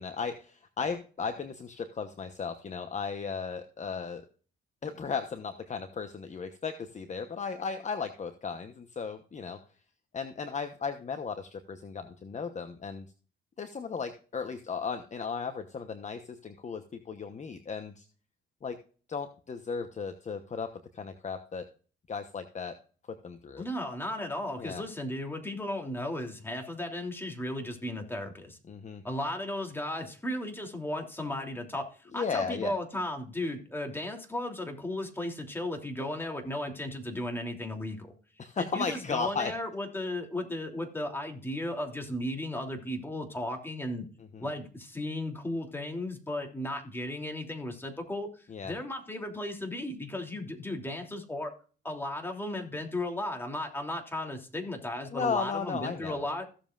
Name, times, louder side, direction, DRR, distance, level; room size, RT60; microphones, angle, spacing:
voice 1, 0.0-4.2 4.8-9.6 10.1-13.1 13.6-18.0 18.6-18.8 19.1-21.7 22.1-22.8 23.2-23.6 24.6-24.8 28.7-29.0 32.1-32.7 38.4-39.5 44.3-44.4 48.5-48.7 55.1-56.2, left 5 dB, 35° left, 8 dB, 1.1 m, -35 dB
voice 2, 23.6-28.6 29.0-38.1 38.6-44.1 44.4-51.5 51.8-56.5, left 1 dB, 10° left, 2 dB, 3.0 m, -35 dB
16.0 x 7.3 x 2.5 m, 0.38 s
cardioid pair, 90°, 20 cm